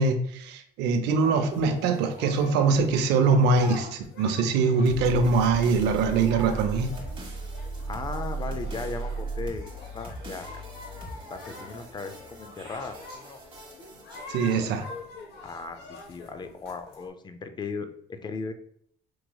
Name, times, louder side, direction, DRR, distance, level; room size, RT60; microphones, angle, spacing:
voice 1, 0.0-6.9 14.3-14.9, right 4 dB, 85° right, 7 dB, 0.5 m, -23 dB
sound 1, 1.2-17.1, left 2 dB, 70° left, 0.9 m, -44 dB
sound 2, 4.8-14.9, right 3 dB, 30° right, 1.2 m, -37 dB
voice 2, 7.9-10.6 11.3-13.4 15.4-18.5, left 4 dB, 25° left, 8 dB, 0.4 m, -37 dB
4.5 x 2.9 x 2.2 m, 0.66 s
cardioid pair, 110°, 17 cm